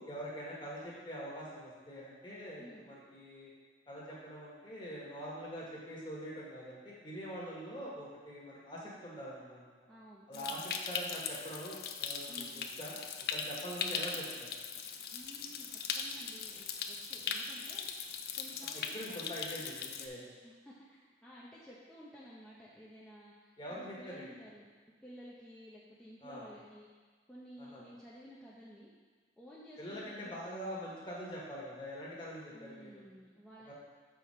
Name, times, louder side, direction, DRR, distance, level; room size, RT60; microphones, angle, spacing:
voice 1, 0.0-3.5 3.9-9.6 10.3-13.0 13.3-14.5 18.7-20.2 23.6-24.3 26.2-26.5 27.6-27.8 29.8-33.0 33.7-33.8, equal, 25° left, -6 dB, 1.7 m, -44 dB
voice 2, 9.9-10.6 12.3-12.7 15.1-19.3 20.4-24.7 25.0-26.9 27.3-28.9 29.4-30.8 32.5-33.7, equal, 5° left, -9 dB, 0.8 m, -54 dB
Stream, 10.3-20.1, left 6 dB, 60° left, 0.5 m, -40 dB
7.5 x 5.0 x 4.4 m, 1.5 s
head